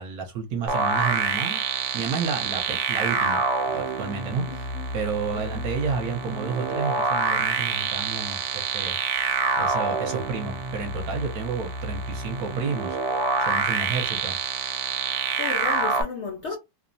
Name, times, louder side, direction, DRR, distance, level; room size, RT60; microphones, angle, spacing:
voice 1, 0.0-1.6 1.9-3.4 3.7-4.7 4.9-9.0 9.6-13.0 13.4-14.4 16.5-16.6, right 5 dB, 65° right, 1.1 m, -31 dB
sound 1, 0.7-16.0, right 5 dB, 85° right, 1.3 m, -27 dB
voice 2, 4.5-4.9 5.3-5.7 15.4-16.6, left 5 dB, 70° left, 0.6 m, -34 dB
3.1 x 2.0 x 2.6 m
omnidirectional pair, 1.9 m